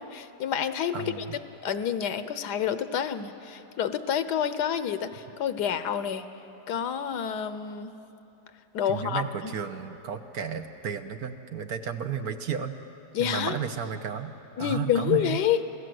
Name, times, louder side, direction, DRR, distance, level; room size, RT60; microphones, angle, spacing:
voice 1, 0.0-6.3 6.7-8.0 8.7-9.5 13.1-13.6 14.6-15.6, left 9 dB, 90° left, 12 dB, 1.4 m, -28 dB
voice 2, 0.9-1.4 8.8-12.7 13.2-14.3 14.6-15.4, right 7 dB, 65° right, 8 dB, 1.4 m, -33 dB
27.5 x 16.0 x 7.8 m, 2.9 s
omnidirectional pair, 1.7 m